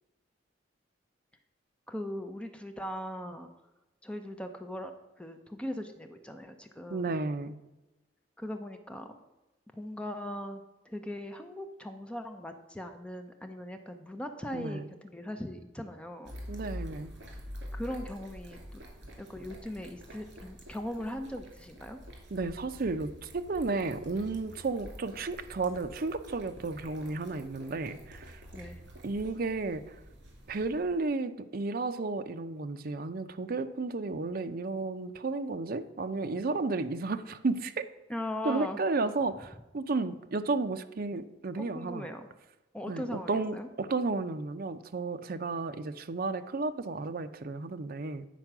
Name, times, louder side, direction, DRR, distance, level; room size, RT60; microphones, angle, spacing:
voice 1, 1.9-3.5 4.0-4.9 5.2-7.1 8.4-9.1 9.7-16.3 17.7-18.8 19.2-22.0 28.5-28.8 38.1-38.8 41.6-42.3 42.7-43.7, left 1 dB, 5° left, 6 dB, 0.6 m, -39 dB
voice 2, 6.9-7.5 14.5-14.9 16.5-17.1 22.3-28.4 29.0-30.0 30.5-37.9 38.4-42.1 42.9-48.3, right 3 dB, 55° right, 9 dB, 0.6 m, -33 dB
sound 1, 16.2-31.0, equal, 75° right, 2.6 m, -47 dB
9.1 x 4.5 x 5.9 m, 1.0 s
head